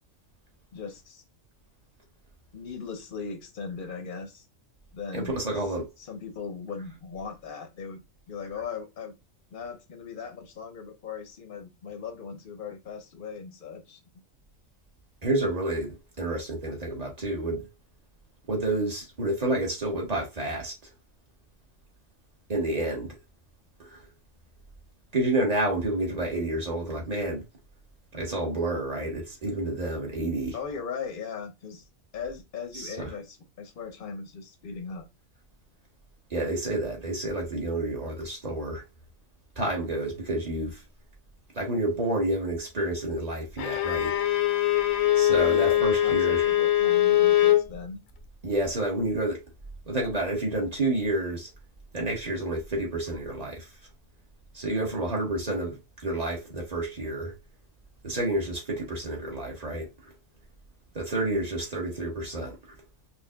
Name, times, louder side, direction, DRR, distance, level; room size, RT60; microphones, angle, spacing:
voice 1, 0.7-1.2 2.5-4.4 4.9-5.3 6.1-8.0 8.3-9.1 9.5-14.0 30.5-31.8 32.1-35.1 45.3-48.0 61.3-61.4, left 5 dB, 45° left, 0.8 m, -38 dB
voice 2, 5.1-5.9 15.2-17.7 18.5-20.7 22.5-23.1 23.8-24.0 25.1-27.4 28.1-30.6 32.7-33.1 36.3-38.8 39.6-40.8 41.5-44.2 45.1-46.4 48.4-49.4 49.9-51.5 51.9-53.7 54.5-57.3 58.0-59.9 60.9-62.7, right 2 dB, 30° right, 1.3 m, -29 dB
Bowed string instrument, 43.6-47.7, left 13 dB, 80° left, 1.0 m, -22 dB
5.3 x 2.4 x 2.3 m
omnidirectional pair, 1.4 m